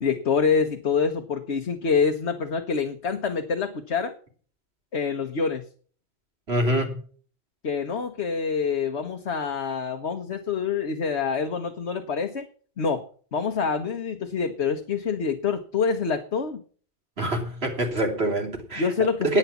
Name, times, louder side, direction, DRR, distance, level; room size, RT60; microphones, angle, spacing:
voice 1, 0.0-4.1 4.9-5.6 7.6-12.5 12.8-13.1 13.3-16.6 18.8-19.4, left 5 dB, 85° left, 1.5 m, -26 dB
voice 2, 6.5-7.0 17.2-18.9 19.2-19.4, right 1 dB, 70° right, 3.3 m, -25 dB
11.0 x 9.6 x 7.1 m
omnidirectional pair, 1.1 m